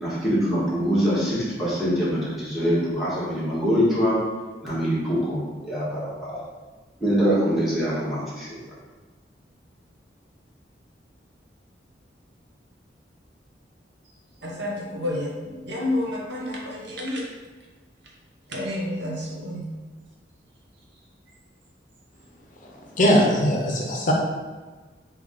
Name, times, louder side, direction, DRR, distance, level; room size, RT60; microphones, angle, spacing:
voice 1, 0.0-4.1 4.6-6.0 6.3-6.4 7.0-8.5, equal, ahead, -10 dB, 1.4 m, -24 dB
voice 2, 14.4-17.4 18.5-19.7, left 1 dB, 80° right, -2 dB, 0.9 m, -30 dB
voice 3, 23.0-24.1, equal, 45° left, -1 dB, 0.6 m, -20 dB
3.6 x 2.7 x 3.7 m, 1.3 s
head